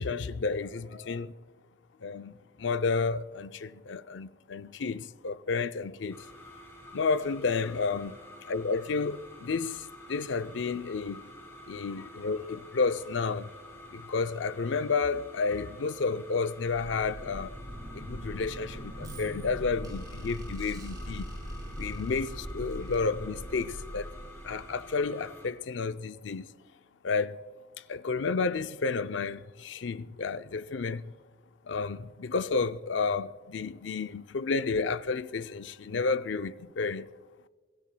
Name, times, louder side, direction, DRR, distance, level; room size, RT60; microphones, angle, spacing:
voice 1, 0.0-1.3 2.0-2.3 2.6-6.3 6.9-8.2 8.5-11.2 11.7-13.5 13.9-17.6 17.9-21.3 21.8-24.1 24.4-26.5 27.0-27.4 27.9-31.1 31.7-37.1, left 4 dB, 70° left, 0.5 m, -31 dB
sound 1, 6.1-25.5, left 1 dB, 15° left, 3.7 m, -49 dB
sound 2, 16.6-25.0, equal, 20° right, 5.1 m, -41 dB
23.5 x 17.0 x 2.2 m
head